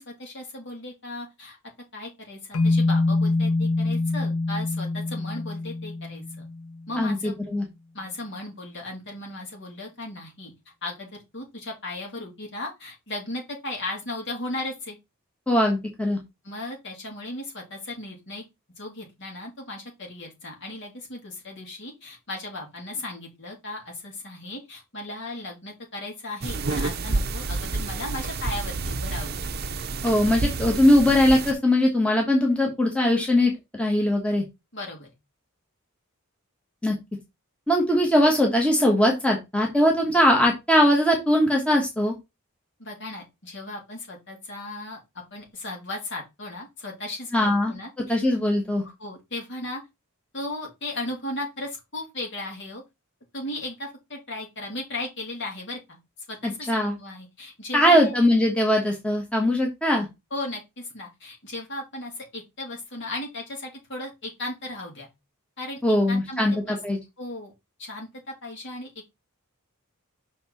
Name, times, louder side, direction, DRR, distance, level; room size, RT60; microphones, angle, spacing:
voice 1, 0.0-1.6 1.9-6.5 6.9-7.3 7.9-10.5 10.8-15.0 16.4-18.4 18.8-29.5 34.7-35.1 42.8-45.0 45.3-48.2 48.8-49.8 50.3-52.8 53.3-56.0 56.3-58.1 60.3-65.1 65.6-66.8 67.2-67.5 67.8-68.1 68.4-69.1, left 2 dB, 55° left, -1 dB, 3.3 m, -36 dB
sound 1, 2.5-6.8, left 2 dB, 85° left, 0.7 m, -25 dB
voice 2, 7.0-7.7 15.5-16.2 30.0-34.4 36.8-37.0 37.7-42.1 47.3-47.7 48.1-48.9 56.4-57.0 57.7-60.1 65.8-67.0, left 1 dB, 5° left, 0 dB, 1.3 m, -21 dB
sound 2, 26.4-31.5, right 3 dB, 45° right, 0.7 m, -29 dB
6.0 x 4.5 x 4.2 m, 0.22 s
head